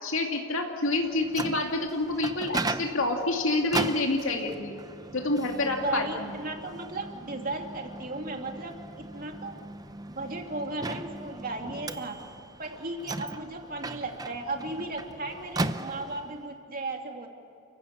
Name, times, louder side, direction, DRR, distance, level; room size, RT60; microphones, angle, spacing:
voice 1, 0.0-4.8 5.1-6.3, left 2 dB, 60° left, 1 dB, 2.4 m, -28 dB
Microwave oven, 1.0-16.4, right 2 dB, 15° right, 0.6 m, -37 dB
voice 2, 5.8-9.6 10.1-12.2 12.6-17.3, right 2 dB, 40° right, 2 dB, 2.8 m, -35 dB
30.0 x 16.0 x 8.5 m, 2.7 s
head